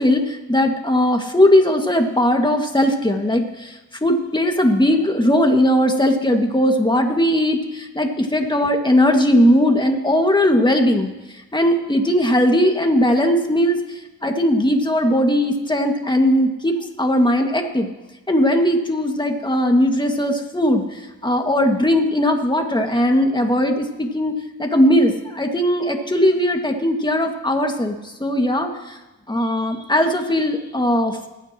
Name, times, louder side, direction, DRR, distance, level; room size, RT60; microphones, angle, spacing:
voice 1, 0.0-17.9 18.3-29.0 29.3-31.3, left 1 dB, 10° left, 3 dB, 2.0 m, -19 dB
21.0 x 9.4 x 3.0 m, 1.0 s
cardioid pair, 55°, 37 cm